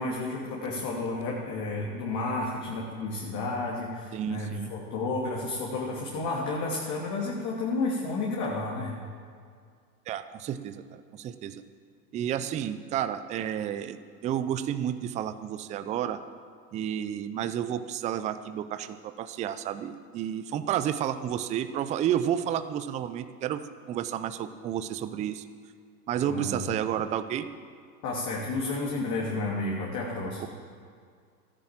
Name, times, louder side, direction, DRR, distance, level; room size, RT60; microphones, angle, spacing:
voice 1, 0.0-9.0 26.3-26.8 28.0-30.5, left 2 dB, 40° left, -3 dB, 2.7 m, -31 dB
voice 2, 4.1-4.7 10.1-11.6 12.1-14.0 14.2-16.2 16.7-25.4 26.1-27.5 30.4-30.5, right 10 dB, 15° right, 11 dB, 0.4 m, -31 dB
14.0 x 9.8 x 7.5 m, 2.2 s
hypercardioid pair, 105°, 48 cm